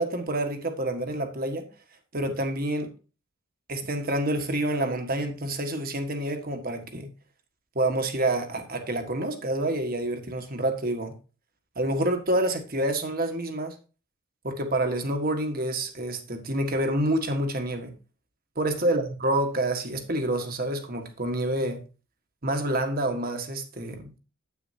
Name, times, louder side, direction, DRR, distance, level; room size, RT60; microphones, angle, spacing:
voice 1, 0.0-1.7 2.1-2.9 3.7-7.1 7.7-11.1 11.7-13.7 14.4-17.9 18.5-21.8 22.4-24.2, right 1 dB, 40° right, 1.5 m, -28 dB
9.6 x 8.8 x 2.8 m
head